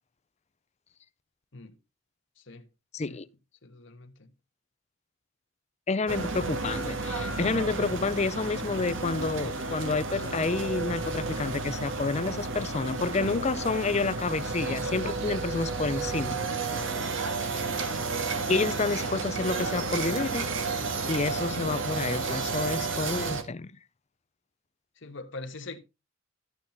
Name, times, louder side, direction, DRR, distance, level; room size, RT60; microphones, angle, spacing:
voice 1, 2.4-2.7 3.1-3.2 3.6-4.3 19.6-19.7 25.0-25.8, left 3 dB, 65° left, 1.4 m, -43 dB
voice 2, 2.9-3.3 5.9-16.4 18.5-20.5 21.1-23.7, left 3 dB, 35° left, 0.5 m, -29 dB
sound 1, 6.1-23.4, right 3 dB, 65° right, 1.7 m, -32 dB
14.0 x 7.4 x 4.0 m
head